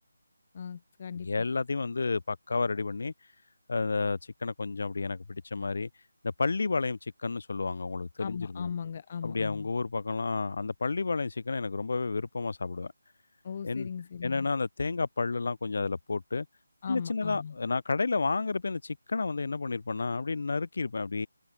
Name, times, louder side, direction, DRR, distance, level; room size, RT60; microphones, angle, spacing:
voice 1, 0.5-1.3 8.2-9.7 13.4-14.5 16.8-17.6, left 7 dB, 25° left, 0.9 m, -38 dB
voice 2, 1.1-3.1 3.7-5.9 6.2-8.7 9.2-12.9 13.6-13.9 14.2-16.5 16.9-21.3, left 4 dB, 45° left, 1.6 m, -31 dB
figure-of-eight pair, 180°, 0 cm